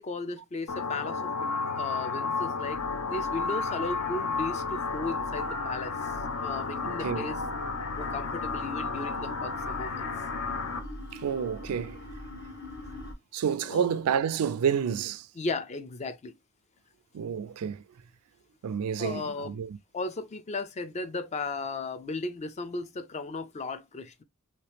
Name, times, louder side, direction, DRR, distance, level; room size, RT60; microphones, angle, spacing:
voice 1, 0.0-2.8 3.1-5.9 6.4-7.4 7.9-10.1 13.6-14.0 15.4-16.3 19.0-19.5 19.9-24.2, left 3 dB, 30° left, 0.4 m, -36 dB
sound 1, 0.7-10.8, left 4 dB, 80° left, 0.7 m, -32 dB
sound 2, 2.6-13.1, left 1 dB, 50° left, 1.2 m, -43 dB
voice 2, 11.1-12.0 13.3-15.3 17.1-17.8 18.6-19.8, right 7 dB, 80° right, 0.4 m, -29 dB
3.0 x 2.9 x 3.3 m
head